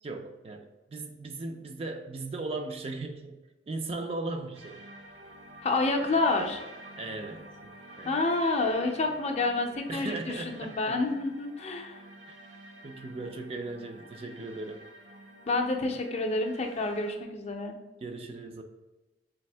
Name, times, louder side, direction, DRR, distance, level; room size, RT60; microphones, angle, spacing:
voice 1, 0.0-3.4 3.7-4.8 7.0-7.5 8.0-8.2 9.9-11.1 12.3-12.4 12.8-14.9 18.0-18.6, right 2 dB, 30° right, 5 dB, 0.3 m, -37 dB
sound 1, 4.5-17.1, right 1 dB, 85° right, 0.9 m, -49 dB
voice 2, 5.6-6.6 8.1-12.0 15.5-17.7, left 2 dB, 35° left, 3 dB, 0.4 m, -28 dB
3.4 x 3.4 x 3.3 m, 1.1 s
head